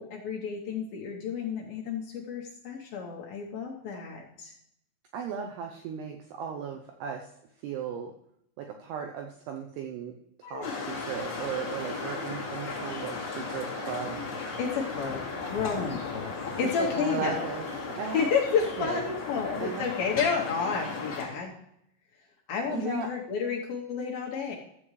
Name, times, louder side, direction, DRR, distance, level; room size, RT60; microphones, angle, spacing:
voice 1, 0.0-4.5 10.4-10.7 14.6-15.2 15.5-17.5 18.1-21.5 22.5-24.6, left 6 dB, 75° left, -1 dB, 2.2 m, -31 dB
voice 2, 5.1-7.3 7.6-8.1 8.6-10.1 10.4-14.2 16.6-18.3 18.8-19.0 19.4-19.9 22.7-23.1, right 7 dB, 80° right, 3 dB, 2.4 m, -36 dB
sound 1, 10.6-21.3, left 4 dB, 35° left, 2.2 m, -36 dB
14.0 x 7.7 x 3.1 m, 0.76 s
omnidirectional pair, 5.4 m